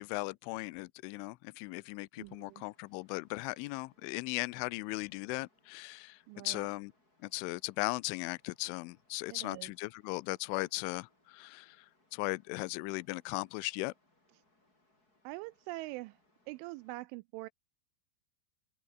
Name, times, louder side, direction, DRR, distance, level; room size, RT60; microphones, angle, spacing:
voice 1, 0.0-6.2 6.4-6.9 7.2-11.9 12.1-13.9, left 24 dB, 80° left, 3.1 m, -37 dB
sound 1, 2.2-16.9, left 2 dB, 15° left, 7.5 m, -73 dB
voice 2, 2.2-2.6 6.3-6.7 9.3-9.7 15.2-16.2 16.5-17.5, right 21 dB, 85° right, 2.9 m, -44 dB
open air
omnidirectional pair, 5.8 m